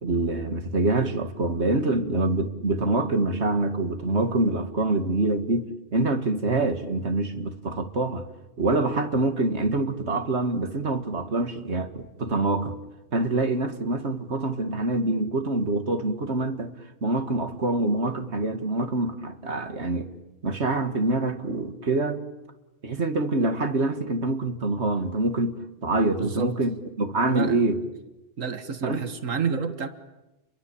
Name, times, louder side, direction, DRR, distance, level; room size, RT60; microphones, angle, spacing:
voice 1, 0.0-8.3 8.6-12.8 13.1-16.8 17.0-20.1 20.4-22.2 22.8-27.8 28.8-29.1, right 2 dB, 60° right, 8 dB, 2.3 m, -25 dB
voice 2, 26.2-26.5 27.2-27.6 28.4-29.9, right 6 dB, 85° right, 10 dB, 1.9 m, -29 dB
30.0 x 23.0 x 8.7 m, 1.0 s
omnidirectional pair, 1.3 m